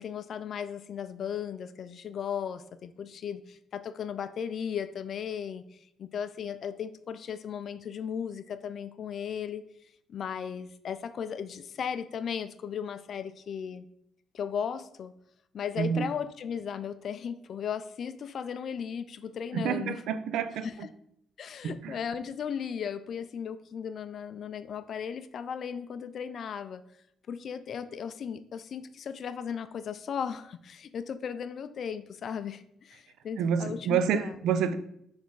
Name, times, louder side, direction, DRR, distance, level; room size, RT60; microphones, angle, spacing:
voice 1, 0.0-9.6 10.1-13.9 14.3-15.1 15.5-20.0 20.6-20.9 21.4-26.8 27.3-34.4, left 7 dB, 60° left, 0.4 m, -36 dB
voice 2, 15.8-16.1 19.5-20.9 21.6-22.0 33.4-34.8, right 7 dB, 85° right, 0.5 m, -28 dB
6.5 x 3.4 x 4.6 m
cardioid pair, 90°, 0 cm